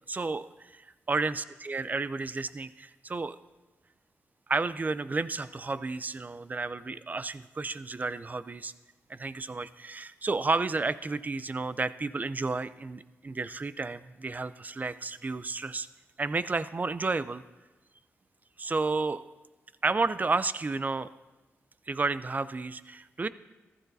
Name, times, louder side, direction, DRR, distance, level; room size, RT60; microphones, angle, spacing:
voice 1, 0.1-3.4 4.5-8.7 9.1-15.9 16.2-17.4 18.6-19.2 19.8-21.1 21.9-23.3, right 3 dB, 35° right, 15 dB, 0.5 m, -31 dB
14.5 x 12.5 x 2.7 m, 1.1 s
cardioid pair, 60°, 5 cm